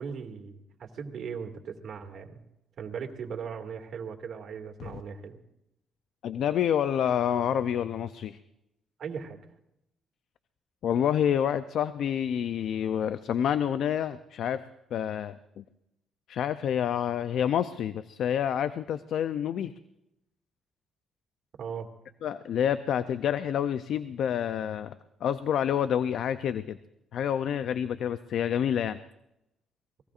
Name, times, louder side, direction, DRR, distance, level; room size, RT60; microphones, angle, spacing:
voice 1, 0.0-2.4 2.8-5.4 9.0-9.4 21.6-21.9, right 6 dB, 65° right, 3 dB, 2.3 m, -38 dB
voice 2, 6.2-8.4 10.8-14.6 14.9-15.6 16.3-19.7 22.2-24.9 25.2-26.8 27.1-29.0, left 9 dB, 75° left, 12 dB, 0.5 m, -28 dB
29.5 x 19.5 x 2.5 m, 0.85 s
cardioid pair, 90°, 0 cm